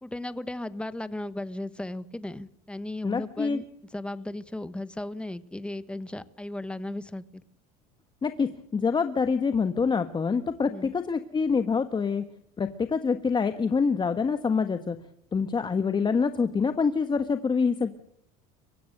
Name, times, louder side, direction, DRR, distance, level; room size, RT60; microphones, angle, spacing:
voice 1, 0.0-3.6 3.9-7.4 10.7-10.9, left 1 dB, 5° left, 14 dB, 1.3 m, -36 dB
voice 2, 3.0-3.6 8.2-12.2 12.6-15.0 15.3-17.9, left 5 dB, 25° left, 9 dB, 1.4 m, -26 dB
24.0 x 16.5 x 6.7 m, 0.75 s
supercardioid pair, 95°, 18 cm